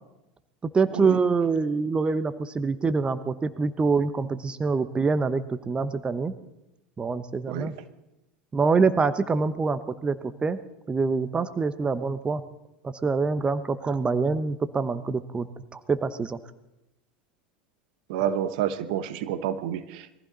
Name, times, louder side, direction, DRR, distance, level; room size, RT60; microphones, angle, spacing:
voice 1, 0.7-6.3 7.0-7.7 8.5-10.6 10.9-12.4 12.8-16.4, right 4 dB, 20° right, 13 dB, 0.9 m, -25 dB
voice 2, 18.1-20.2, right 10 dB, 65° right, 12 dB, 1.1 m, -29 dB
22.0 x 15.0 x 4.0 m, 0.92 s
hypercardioid pair, 85°, 5 cm